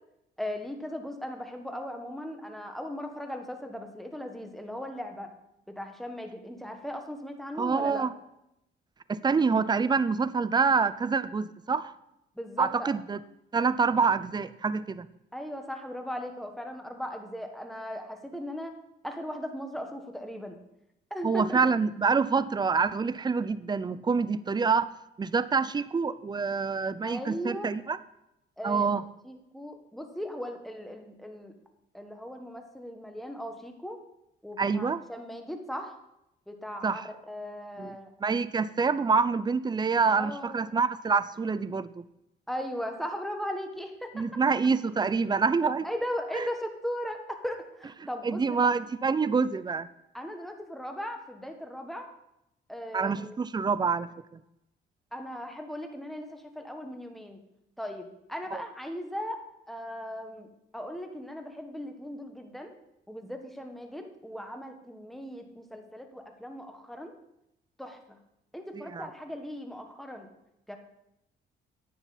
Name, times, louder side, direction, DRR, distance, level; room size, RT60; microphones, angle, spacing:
voice 1, 0.4-5.3 5.7-8.0 12.3-12.9 15.3-18.7 19.0-20.6 21.1-21.6 27.0-27.7 28.6-28.9 29.2-31.5 31.9-34.0 34.4-36.0 36.5-38.1 40.1-40.6 42.5-44.6 45.8-48.7 50.1-52.1 52.7-53.4 55.1-57.4 57.8-59.4 59.7-60.5 60.7-62.7 63.1-67.1 67.8-68.2 68.5-70.3 70.7-70.8, equal, ahead, 4 dB, 1.4 m, -38 dB
voice 2, 7.6-8.1 9.1-11.9 12.6-13.2 13.5-15.1 21.2-24.9 25.2-28.0 28.6-29.0 34.6-35.0 36.8-37.1 37.8-38.0 38.2-42.0 44.2-45.9 46.3-46.5 48.2-49.9 52.9-54.4 58.5-58.6 68.7-69.1, right 5 dB, 20° right, 15 dB, 0.5 m, -26 dB
10.5 x 9.0 x 4.2 m, 0.84 s
cardioid pair, 90°, 20 cm